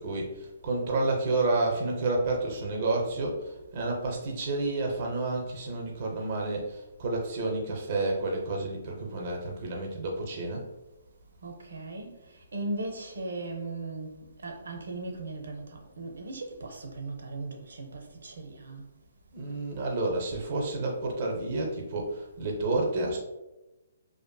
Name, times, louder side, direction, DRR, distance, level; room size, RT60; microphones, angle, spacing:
voice 1, 0.0-10.7 19.3-23.2, right 2 dB, 35° right, 0.4 m, -30 dB
voice 2, 11.4-18.8, right 2 dB, 85° right, 0.5 m, -38 dB
2.5 x 2.4 x 2.2 m
hypercardioid pair, 170°, 0 cm